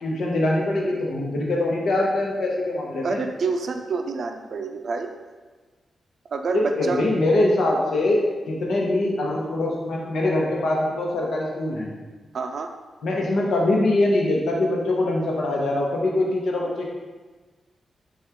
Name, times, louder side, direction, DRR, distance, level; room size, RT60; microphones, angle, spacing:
voice 1, 0.0-3.2 6.5-11.9 13.0-16.9, left 2 dB, 75° left, -2 dB, 0.8 m, -23 dB
voice 2, 3.0-5.1 6.3-7.0 12.3-12.7, right 4 dB, 60° right, 5 dB, 0.4 m, -27 dB
5.6 x 2.4 x 3.6 m, 1.3 s
wide cardioid pair, 135°, 0 cm